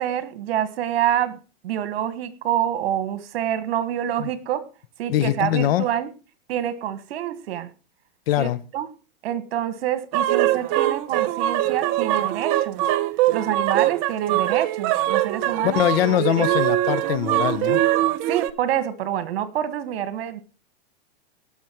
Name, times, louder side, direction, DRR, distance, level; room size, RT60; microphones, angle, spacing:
voice 1, 0.0-1.4 1.6-4.7 5.0-6.1 6.5-7.7 8.4-8.5 8.7-8.9 9.2-12.8 13.3-16.5 18.3-20.4, right 10 dB, 70° right, 1.7 m, -27 dB
voice 2, 5.1-5.9 8.3-8.6 15.6-17.8, left 13 dB, 70° left, 1.2 m, -22 dB
sound 1, 10.1-18.5, right 14 dB, 40° right, 0.8 m, -22 dB
18.5 x 6.5 x 4.6 m
hypercardioid pair, 135°, 31 cm